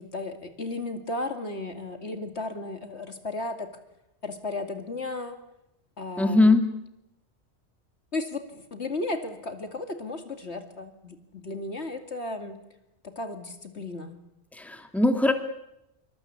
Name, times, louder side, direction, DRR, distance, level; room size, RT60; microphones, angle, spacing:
voice 1, 0.0-3.7 4.2-5.4 6.0-6.6 8.1-12.6 13.0-14.2, left 2 dB, 65° left, 7 dB, 2.6 m, -34 dB
voice 2, 6.2-6.6 14.6-15.3, left 2 dB, ahead, 6 dB, 2.4 m, -20 dB
26.5 x 24.5 x 8.6 m, 0.88 s
omnidirectional pair, 1.2 m